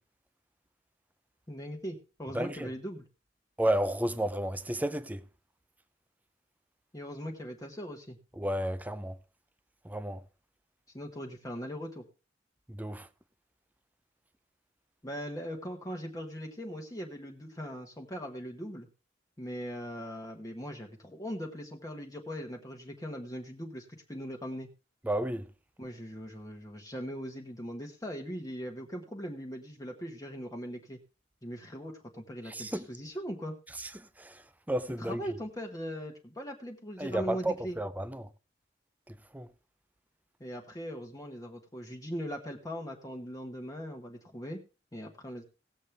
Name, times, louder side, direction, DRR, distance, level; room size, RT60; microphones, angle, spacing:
voice 1, 1.5-3.0 6.9-8.2 10.9-12.0 15.0-18.9 19.4-24.7 25.8-31.0 31.4-33.5 35.0-37.8 40.4-44.6 44.9-45.4, equal, 20° left, 1.2 m, -40 dB
voice 2, 2.3-2.7 3.6-5.2 8.4-9.2 9.8-10.2 12.7-13.1 25.0-25.5 32.5-32.9 33.8-35.2 37.0-38.3 39.1-39.5, right 1 dB, 10° right, 0.6 m, -32 dB
18.0 x 7.4 x 3.4 m
head